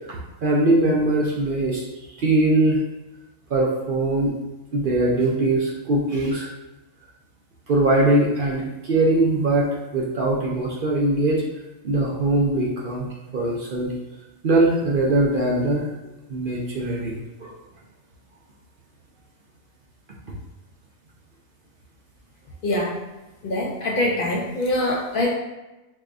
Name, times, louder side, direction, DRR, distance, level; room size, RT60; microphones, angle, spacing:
voice 1, 0.1-1.8 2.2-2.8 3.5-4.3 4.7-6.5 7.7-11.4 11.8-13.9 14.4-15.9 16.3-17.5, right 2 dB, 60° right, -3 dB, 0.6 m, -21 dB
voice 2, 22.6-22.9 23.4-25.3, left 1 dB, 60° left, -2 dB, 0.5 m, -23 dB
4.6 x 2.2 x 2.5 m, 1.0 s
omnidirectional pair, 1.4 m